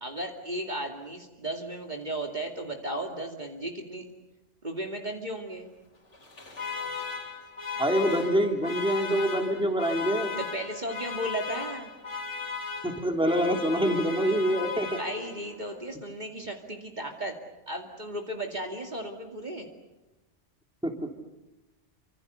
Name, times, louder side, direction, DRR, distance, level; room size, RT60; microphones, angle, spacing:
voice 1, 0.0-4.1 4.6-5.7 10.4-11.9 15.0-17.4 17.7-19.7, right 1 dB, 40° right, 2 dB, 2.6 m, -35 dB
Alarm, 6.1-15.6, left 5 dB, 70° left, 3.2 m, -36 dB
voice 2, 7.8-10.3 12.8-15.0 20.8-20.9, equal, 5° right, 3 dB, 3.1 m, -25 dB
28.0 x 26.0 x 6.9 m, 1.1 s
omnidirectional pair, 1.2 m